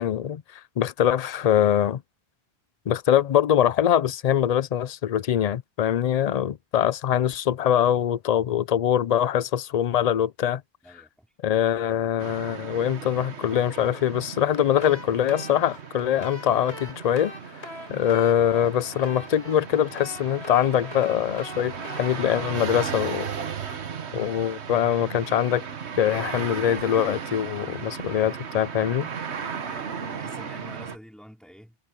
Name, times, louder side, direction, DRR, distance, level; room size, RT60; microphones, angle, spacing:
voice 1, 0.0-2.0 2.9-10.6 11.4-17.3 17.9-23.3 24.1-25.6 26.0-29.1, left 10 dB, 50° left, 0.5 m, -23 dB
voice 2, 10.8-11.3 29.6-31.8, equal, ahead, 4.4 m, -47 dB
sound 1, 12.2-31.0, right 6 dB, 80° right, 1.5 m, -36 dB
sound 2, 14.6-23.7, left 1 dB, 70° left, 7.7 m, -43 dB
omnidirectional pair, 1.1 m